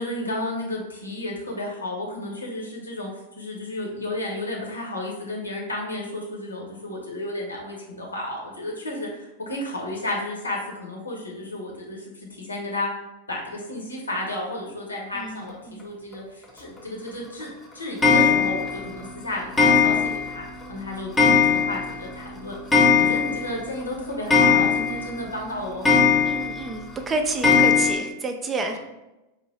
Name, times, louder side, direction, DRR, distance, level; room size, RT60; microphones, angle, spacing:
voice 1, 0.0-3.1 3.4-12.9 13.3-22.5 22.9-26.3, left 1 dB, 80° left, -1 dB, 0.9 m, -32 dB
voice 2, 15.1-15.9 26.3-28.8, right 3 dB, 20° right, 5 dB, 0.4 m, -30 dB
Clock, 18.0-18.7 19.6-20.3 20.6-20.7 21.2-21.9 22.2-22.3 22.5-23.5 23.8-23.9 24.3-25.1 25.9-26.6 27.4-28.0, left 5 dB, 15° left, 0.8 m, -18 dB
4.3 x 2.6 x 3.1 m, 0.98 s
figure-of-eight pair, 90°, 0 cm